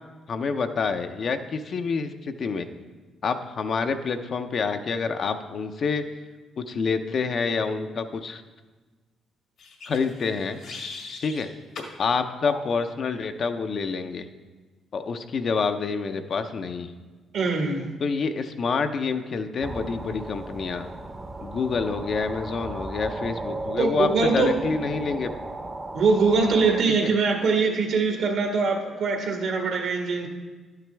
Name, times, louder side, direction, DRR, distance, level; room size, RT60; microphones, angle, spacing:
voice 1, 0.3-2.7 3.2-6.1 6.6-8.4 9.9-10.6 11.2-11.5 12.0-14.3 14.9-16.9 18.0-20.9 21.4-25.3 27.0-27.1, left 5 dB, 55° left, 7 dB, 0.6 m, -27 dB
sound 1, 9.6-11.4 11.7-12.0 12.5-12.7, left 3 dB, 75° left, 1.8 m, -39 dB
voice 2, 17.3-17.9 23.8-24.5 25.9-30.3, right 4 dB, 70° right, 2 dB, 1.6 m, -23 dB
sound 2, 19.6-26.8, right 2 dB, 25° right, 0.8 m, -36 dB
12.0 x 9.2 x 3.4 m, 1.3 s
cardioid pair, 90°, 0 cm